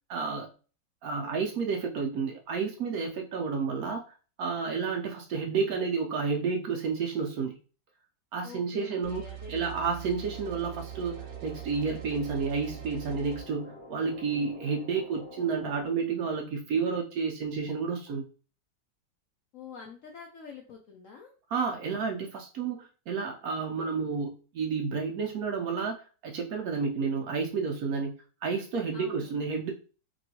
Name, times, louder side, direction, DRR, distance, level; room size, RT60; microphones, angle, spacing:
voice 1, 0.1-0.5 1.0-4.0 4.4-7.6 8.3-11.2 11.4-18.2 21.5-28.1 28.4-29.7, right 5 dB, 70° right, 2 dB, 0.9 m, -31 dB
voice 2, 8.4-9.9 19.5-21.3 28.9-29.3, left 5 dB, 70° left, 1 dB, 0.7 m, -46 dB
sound 1, 9.0-13.4, right 15 dB, 85° right, 1.4 m, -42 dB
sound 2, 10.2-15.9, equal, 15° right, 1.6 m, -48 dB
3.0 x 3.0 x 2.8 m, 0.37 s
omnidirectional pair, 1.9 m